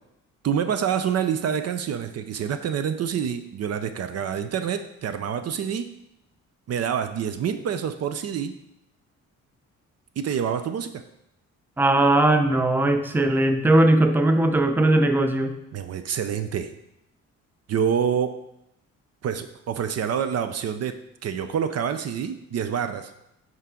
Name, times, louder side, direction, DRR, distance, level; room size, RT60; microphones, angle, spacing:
voice 1, 0.4-5.9 6.7-8.6 10.2-11.0 15.7-16.7 17.7-18.4 19.2-23.1, right 8 dB, 55° right, 10 dB, 0.6 m, -27 dB
voice 2, 11.8-15.5, right 1 dB, 5° right, 7 dB, 0.6 m, -19 dB
8.4 x 4.6 x 3.7 m, 0.82 s
cardioid pair, 90°, 30 cm